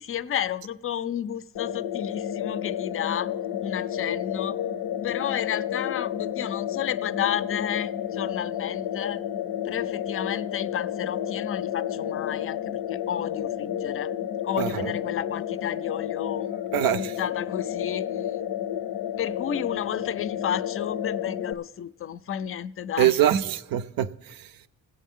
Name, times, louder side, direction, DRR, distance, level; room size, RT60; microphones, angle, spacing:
voice 1, 0.0-3.3 3.6-4.6 5.0-9.2 9.6-14.1 14.4-16.5 16.9-18.4 19.2-23.2, left 9 dB, 40° left, 0.4 m, -32 dB
sound 1, 1.6-21.5, left 10 dB, 85° left, 0.6 m, -31 dB
voice 2, 14.6-14.9 16.7-17.2 23.0-24.5, right 11 dB, 80° right, 0.6 m, -24 dB
21.0 x 8.3 x 3.6 m
cardioid pair, 110°, 34 cm